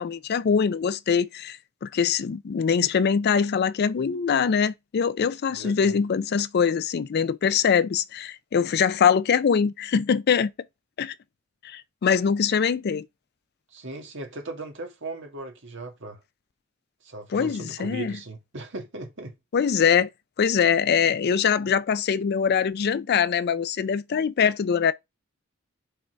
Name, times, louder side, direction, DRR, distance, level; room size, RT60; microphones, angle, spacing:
voice 1, 0.0-10.5 11.0-11.1 11.6-13.1 17.3-18.1 19.5-20.1 20.4-24.9, left 7 dB, 50° left, 0.4 m, -23 dB
voice 2, 5.5-6.0 13.7-16.2 17.0-19.3, right 2 dB, 65° right, 1.7 m, -38 dB
5.6 x 4.0 x 4.5 m
head